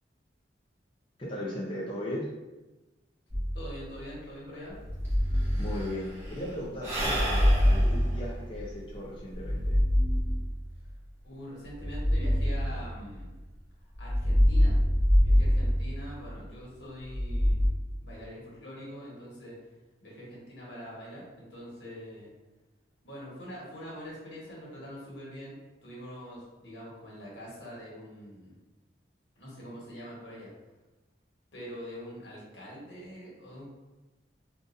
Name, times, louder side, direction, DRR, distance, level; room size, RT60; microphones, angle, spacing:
voice 1, 1.2-2.3 5.6-9.8, left 1 dB, 30° left, -6 dB, 0.5 m, -37 dB
sound 1, 3.3-4.0 4.8-6.4 7.0-8.8 9.3-10.9 11.7-13.4 14.0-16.5 17.1-17.7, equal, 50° right, 1.4 m, -25 dB
voice 2, 3.5-4.8 10.8-10.9 11.2-13.3 14.0-14.8 15.2-17.6 18.0-19.6 20.0-22.3 23.0-25.6 25.8-28.6 29.3-30.5 31.5-33.7, equal, 85° left, -6 dB, 1.3 m, -44 dB
Sigh / Breathing, 4.8-4.9 5.0-9.8, right 1 dB, 15° right, 0.7 m, -35 dB
3.8 x 2.5 x 2.5 m, 1.1 s
head